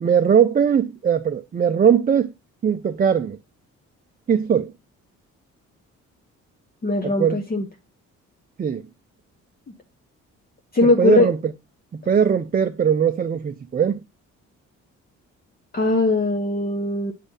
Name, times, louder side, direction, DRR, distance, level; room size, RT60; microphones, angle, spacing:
voice 1, 0.0-2.3 2.6-3.4 4.3-4.7 7.0-7.4 8.6-8.8 11.0-11.4 11.9-14.0, right 7 dB, 30° right, 0.5 m, -20 dB
voice 2, 6.8-7.7 10.7-11.3 15.7-17.1, left 2 dB, 30° left, 1.1 m, -20 dB
8.4 x 3.3 x 5.5 m
cardioid pair, 90°, 30 cm